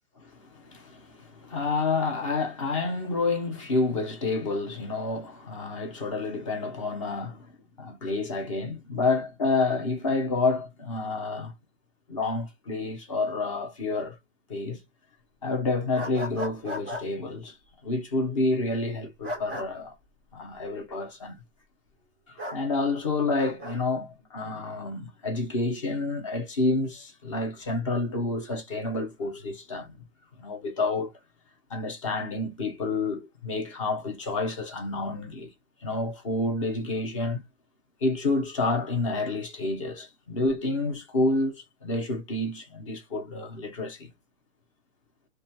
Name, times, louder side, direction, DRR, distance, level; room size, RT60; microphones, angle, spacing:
voice 1, 0.2-7.5 7.8-11.5 12.1-14.2 14.5-14.8 15.4-17.6 17.8-19.9 20.3-21.4 22.3-29.9 30.4-31.1 31.7-35.5 35.8-37.4 38.0-44.1, left 3 dB, 25° left, 0.7 m, -29 dB
sound 1, 15.9-17.0 19.2-19.7 22.4-22.6 23.4-23.8, left 1 dB, 10° right, 0.4 m, -35 dB
2.4 x 2.2 x 2.7 m
hypercardioid pair, 165°, 36 cm